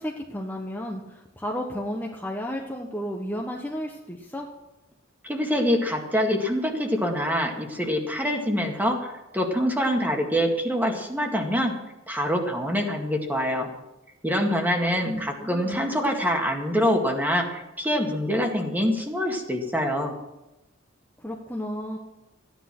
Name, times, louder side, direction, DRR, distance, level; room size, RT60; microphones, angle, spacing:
voice 1, 0.0-4.5 15.0-15.8 21.2-22.0, equal, 10° left, -1 dB, 1.2 m, -33 dB
voice 2, 5.2-11.7 12.1-13.7 14.2-20.1, equal, 10° right, 2 dB, 2.0 m, -25 dB
15.0 x 10.5 x 6.1 m, 0.97 s
head